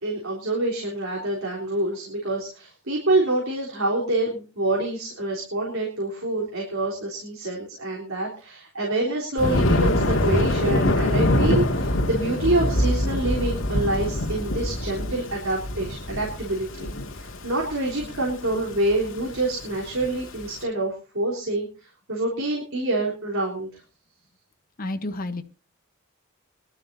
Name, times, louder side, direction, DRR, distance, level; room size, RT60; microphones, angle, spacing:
voice 1, 0.0-16.9 17.2-23.8, right 2 dB, 80° right, -3 dB, 3.8 m, -26 dB
Thunder, 9.4-20.5, left 1 dB, 70° left, 2.3 m, -24 dB
voice 2, 24.8-25.4, left 2 dB, 45° left, 8 dB, 1.1 m, -30 dB
23.5 x 12.5 x 2.8 m, 0.34 s
head